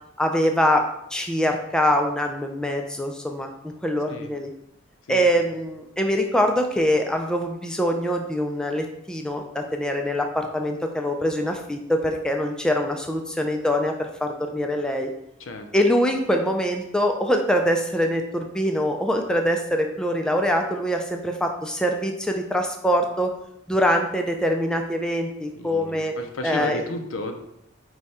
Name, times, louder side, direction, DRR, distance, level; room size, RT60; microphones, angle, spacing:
voice 1, 0.2-0.8 1.1-3.5 3.8-4.5 5.1-15.1 15.7-23.3 23.7-26.1 26.4-26.8, equal, 5° left, 3 dB, 0.3 m, -24 dB
voice 2, 15.4-15.7 25.5-27.4, left 2 dB, 75° left, 5 dB, 0.6 m, -33 dB
4.8 x 2.2 x 4.1 m, 0.78 s
head